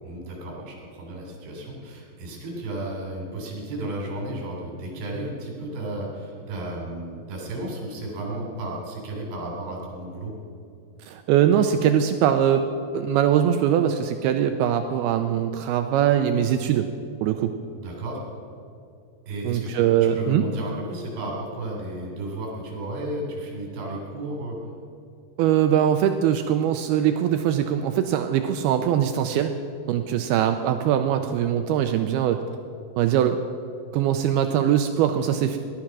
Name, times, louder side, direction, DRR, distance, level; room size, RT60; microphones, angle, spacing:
voice 1, 0.0-10.3 17.7-18.2 19.3-24.6, right 1 dB, 65° right, -1 dB, 5.3 m, -33 dB
voice 2, 11.0-12.7 12.9-16.9 17.2-17.5 19.4-20.5 25.4-29.5 29.9-32.4 33.0-33.4 33.9-35.6, right 10 dB, 85° right, 7 dB, 2.3 m, -22 dB
18.0 x 11.5 x 6.0 m, 2.5 s
omnidirectional pair, 5.0 m